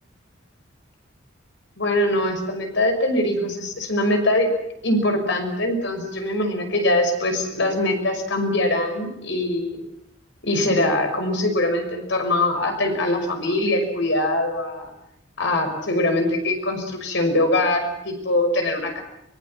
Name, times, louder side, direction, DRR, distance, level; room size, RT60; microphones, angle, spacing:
voice 1, 1.8-4.5 4.8-9.8 10.4-14.9 15.4-19.0, left 1 dB, 65° left, 5 dB, 5.9 m, -22 dB
24.5 x 22.5 x 7.6 m, 0.80 s
head